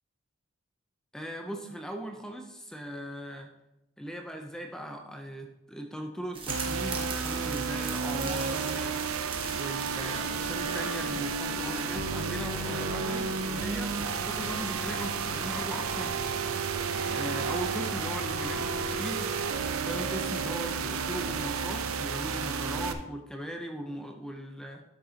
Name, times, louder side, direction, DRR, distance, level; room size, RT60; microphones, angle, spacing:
voice 1, 1.1-3.5 4.0-9.0 9.5-16.2 17.1-19.2 19.8-24.8, equal, 5° left, 3 dB, 0.5 m, -39 dB
sound 1, 6.3-11.4, right 4 dB, 25° right, 1.1 m, -41 dB
sound 2, 6.5-22.9, right 5 dB, 85° right, 0.6 m, -32 dB
sound 3, 9.9-21.7, left 1 dB, 70° left, 2.6 m, -43 dB
12.0 x 6.5 x 2.8 m, 0.91 s
head